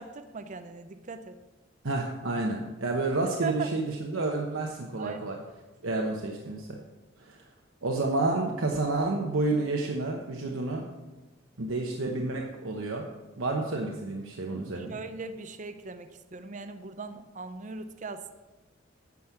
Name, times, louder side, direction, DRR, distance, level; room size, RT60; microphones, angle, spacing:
voice 1, 0.0-1.3 3.4-3.7 5.0-5.2 14.8-18.3, right 4 dB, 40° right, 9 dB, 0.5 m, -39 dB
voice 2, 1.8-5.4 5.8-6.8 7.2-7.4 7.8-10.9 11.6-13.0 13.4-15.0, right 2 dB, 85° right, 0 dB, 1.0 m, -30 dB
9.5 x 6.2 x 7.1 m, 1.1 s
head